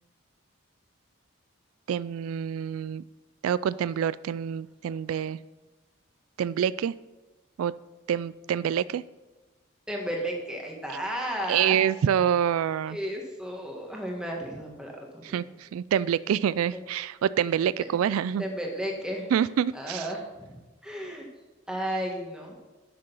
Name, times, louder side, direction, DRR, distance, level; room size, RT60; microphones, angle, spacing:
voice 1, 1.9-3.0 3.4-5.4 6.4-6.9 7.6-7.7 8.1-9.0 11.5-13.0 15.2-18.4 19.3-20.1, right 9 dB, 85° right, 19 dB, 0.3 m, -26 dB
voice 2, 9.9-11.8 12.9-14.9 15.2-15.4 16.7-16.8 17.8-17.9 18.4-19.3 19.7-20.6 20.8-21.3 21.7-22.6, equal, 5° right, 0 dB, 1.7 m, -33 dB
11.5 x 6.7 x 5.4 m, 1.2 s
head